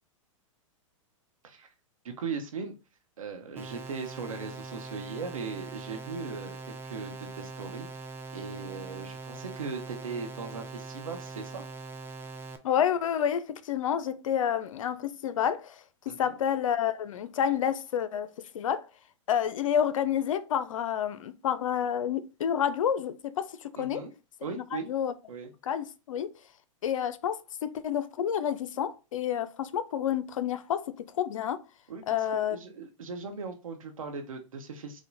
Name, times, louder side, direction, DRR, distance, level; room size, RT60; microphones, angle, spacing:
voice 1, 2.0-2.7 3.2-8.0 8.3-11.6 16.1-16.4 23.7-24.1 24.4-24.9 25.3-25.5 31.9-35.0, right 5 dB, 85° right, 1.0 m, -38 dB
sound 1, 3.6-12.6, right 3 dB, 15° right, 0.5 m, -42 dB
voice 2, 12.6-18.9 19.3-24.0 24.5-25.1 25.6-26.3 26.8-31.6 32.1-32.6, left 9 dB, 75° left, 0.5 m, -29 dB
4.9 x 2.2 x 4.0 m
hypercardioid pair, 115°, 17 cm